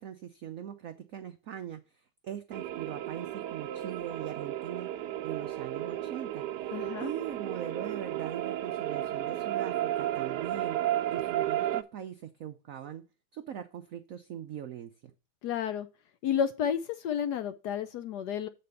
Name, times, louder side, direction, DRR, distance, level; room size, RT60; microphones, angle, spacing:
voice 1, 0.0-4.9 5.2-10.8 11.1-13.0 13.3-14.9, right 9 dB, 85° right, 0.7 m, -41 dB
sound 1, 2.5-11.8, right 12 dB, 70° right, 1.1 m, -33 dB
voice 2, 6.7-7.1 15.4-15.9 16.2-18.5, left 8 dB, 70° left, 1.0 m, -31 dB
7.7 x 4.3 x 6.9 m
omnidirectional pair, 2.2 m